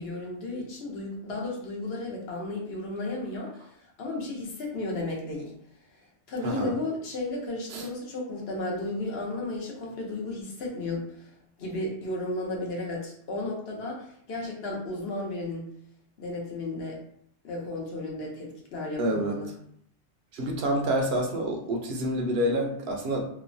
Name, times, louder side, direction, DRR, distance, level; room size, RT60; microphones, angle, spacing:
voice 1, 0.0-5.5 6.3-11.3 11.6-15.7 16.2-17.0 17.4-19.5, left 2 dB, 70° left, -2 dB, 0.9 m, -34 dB
voice 2, 19.0-19.4 20.3-23.2, right 1 dB, 70° right, 1 dB, 0.8 m, -28 dB
2.9 x 2.0 x 2.5 m, 0.69 s
omnidirectional pair, 1.1 m